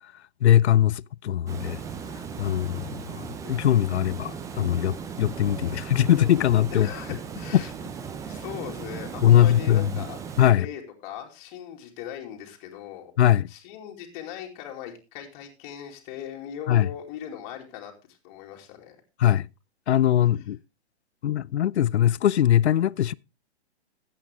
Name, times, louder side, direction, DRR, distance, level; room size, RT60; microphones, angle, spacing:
voice 1, 0.4-1.8 2.4-6.9 9.2-9.9 10.4-10.7 13.2-13.5 16.7-16.9 19.2-19.5 19.9-20.6 21.2-23.1, left 11 dB, 75° left, 0.5 m, -21 dB
Water, 1.5-10.5, right 6 dB, 10° right, 0.6 m, -37 dB
voice 2, 6.7-7.7 8.3-10.2 10.5-13.1 13.5-19.0, left 10 dB, 35° left, 2.6 m, -39 dB
13.0 x 8.6 x 3.4 m
hypercardioid pair, 125°, 34 cm